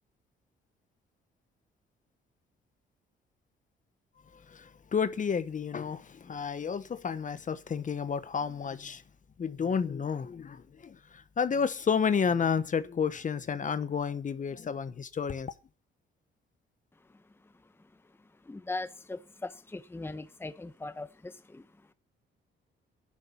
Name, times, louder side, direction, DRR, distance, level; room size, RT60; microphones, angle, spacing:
voice 1, 4.3-9.0 9.4-15.5, left 6 dB, 40° left, 1.0 m, -31 dB
voice 2, 18.4-21.7, left 2 dB, 10° left, 1.0 m, -39 dB
11.0 x 7.0 x 9.5 m
cardioid pair, 90°, 20 cm